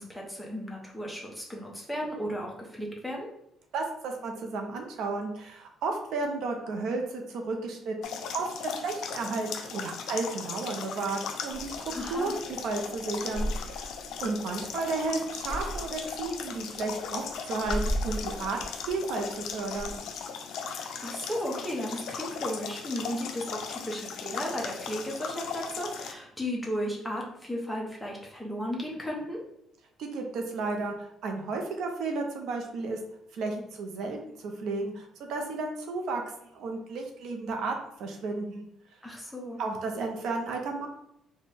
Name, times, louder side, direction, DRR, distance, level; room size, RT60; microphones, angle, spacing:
voice 1, 0.0-3.3 11.9-12.3 20.6-29.4 39.0-39.6, equal, ahead, -2 dB, 0.7 m, -35 dB
voice 2, 3.7-13.9 14.2-18.6 18.9-20.0 30.0-33.0 33.3-37.7 38.0-38.7 39.6-40.9, right 3 dB, 70° right, 3 dB, 0.5 m, -33 dB
sound 1, 8.0-26.1, left 6 dB, 65° left, 0.4 m, -38 dB
Breathing, 11.5-20.0, equal, 90° right, 1.0 m, -37 dB
4.2 x 2.1 x 3.2 m, 0.77 s
cardioid pair, 155°, 0 cm